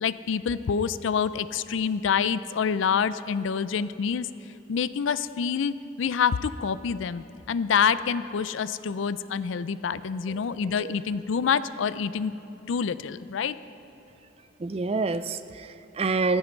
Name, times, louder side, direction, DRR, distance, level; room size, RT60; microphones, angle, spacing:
voice 1, 0.0-4.3 4.7-12.3 12.7-13.6, left 6 dB, 75° left, 15 dB, 0.4 m, -27 dB
voice 2, 14.6-16.4, right 3 dB, 30° right, 12 dB, 0.4 m, -28 dB
15.0 x 14.0 x 4.5 m, 2.9 s
head